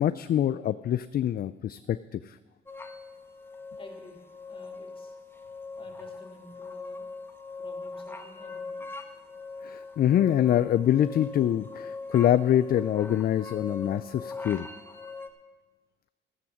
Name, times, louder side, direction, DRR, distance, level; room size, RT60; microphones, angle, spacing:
voice 1, 0.0-2.4 9.6-14.7, left 11 dB, 50° left, 13 dB, 0.4 m, -25 dB
sound 1, 2.7-15.3, left 3 dB, 10° left, 1.1 m, -41 dB
voice 2, 3.8-5.2 5.8-7.1 7.6-9.0, left 3 dB, 25° left, 1 dB, 3.0 m, -50 dB
13.5 x 7.1 x 7.2 m, 1.2 s
cardioid pair, 90°, 20 cm